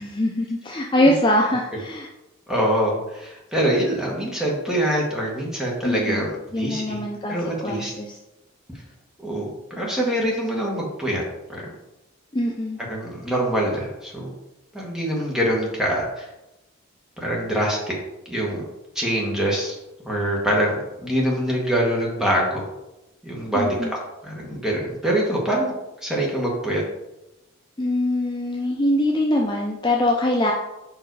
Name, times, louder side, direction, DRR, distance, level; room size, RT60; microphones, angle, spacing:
voice 1, 0.0-2.1 5.8-8.1 12.3-12.8 23.5-23.9 27.8-30.5, left 1 dB, 20° left, -1 dB, 0.5 m, -23 dB
voice 2, 2.5-7.9 9.2-11.2 11.5-11.6 12.9-14.3 14.7-16.3 17.2-17.9 18.3-18.6 18.9-19.8 20.0-22.6 23.2-25.7 26.0-26.8, right 1 dB, 5° right, -3 dB, 1.4 m, -24 dB
5.3 x 4.7 x 4.8 m, 0.95 s
head